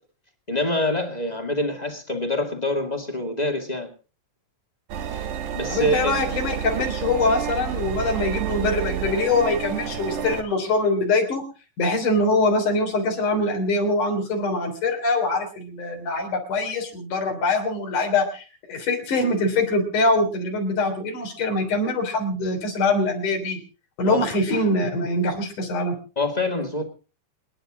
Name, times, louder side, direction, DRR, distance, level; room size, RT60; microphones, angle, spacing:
voice 1, 0.5-3.9 5.0-5.3 5.5-6.1 24.0-24.2 26.2-26.8, left 1 dB, 15° left, 4 dB, 1.9 m, -26 dB
sound 1, 4.9-10.4, right 9 dB, 80° right, 3.0 m, -30 dB
voice 2, 5.7-11.4 11.8-23.6 24.0-26.0, left 2 dB, 85° left, 3 dB, 4.8 m, -23 dB
28.0 x 10.0 x 3.8 m, 0.35 s
omnidirectional pair, 3.5 m